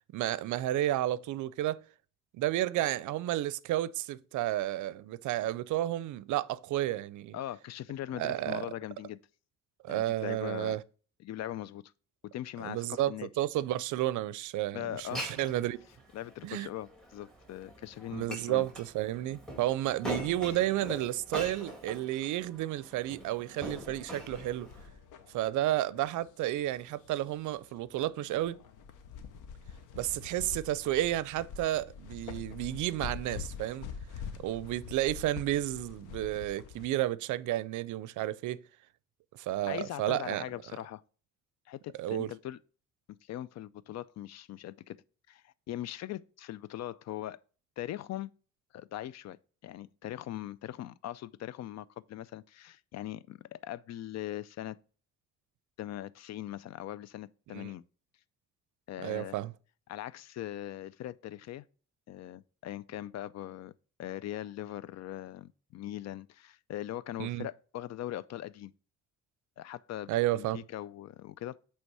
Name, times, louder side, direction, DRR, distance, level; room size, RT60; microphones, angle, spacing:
voice 1, 0.1-1.8 2.3-7.4 8.1-8.6 9.8-10.8 12.6-15.8 16.4-16.7 18.1-24.7 25.3-28.6 29.9-33.9 34.4-38.6 39.3-40.4 42.0-42.3 57.5-57.7 59.0-59.5 67.2-67.5 70.1-70.6, right 14 dB, 75° right, 0.5 m, -32 dB
voice 2, 7.3-9.2 9.9-10.8 11.2-11.9 12.3-13.3 14.7-15.4 16.1-18.7 39.6-41.0 41.7-42.6 43.1-45.0 45.3-47.4 47.8-48.3 48.7-54.8 55.8-57.9 58.9-59.4 59.9-61.6 62.1-63.7 64.0-68.7 69.6-71.6, left 13 dB, 60° left, 0.5 m, -41 dB
Glass, 14.9-24.9, equal, ahead, 2.0 m, -43 dB
sound 1, 23.7-36.9, left 6 dB, 90° left, 0.9 m, -46 dB
8.0 x 3.3 x 4.7 m
cardioid pair, 90°, 30 cm